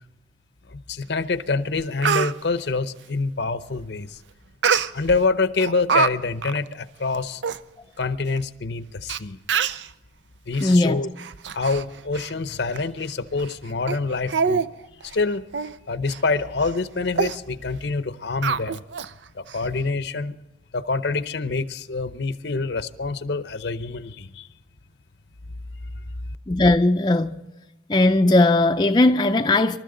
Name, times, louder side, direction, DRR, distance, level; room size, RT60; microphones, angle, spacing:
voice 1, 0.7-4.2 4.9-7.4 8.0-9.4 10.5-11.1 11.5-14.6 15.0-15.4 15.9-18.8 19.3-20.4 20.7-24.5, left 3 dB, 60° left, 0.7 m, -26 dB
Speech, 1.3-1.4 1.8-2.3 4.6-5.2 5.6-6.1 6.4-6.6 7.1-7.2 7.4-7.6 8.4-8.5 9.1-9.2 9.5-9.9 10.5-10.7 11.2-11.8 12.1-12.3 12.8-12.9 13.4-13.5 13.9-14.0 14.3-14.7 15.0-15.2 15.5-15.7 16.1-16.2 16.6-16.8 17.2-17.4 18.4-19.1 19.5-19.6, right 6 dB, 70° right, 0.5 m, -24 dB
voice 2, 10.6-11.0 26.5-27.4 27.9-29.8, left 2 dB, 25° left, 0.5 m, -18 dB
27.0 x 13.0 x 3.8 m
head